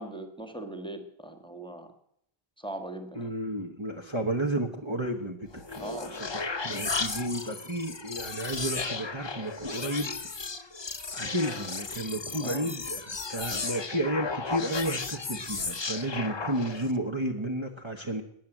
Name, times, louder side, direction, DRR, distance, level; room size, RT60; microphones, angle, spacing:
voice 1, 0.0-1.9 2.6-3.3 5.8-6.2 12.4-12.7, right 1 dB, 5° left, 6 dB, 1.5 m, -40 dB
voice 2, 3.2-10.1 11.1-18.2, right 1 dB, 30° right, 1 dB, 1.2 m, -32 dB
sound 1, 5.5-17.0, left 4 dB, 30° left, 0.7 m, -35 dB
13.5 x 9.7 x 9.0 m, 0.75 s
omnidirectional pair, 1.0 m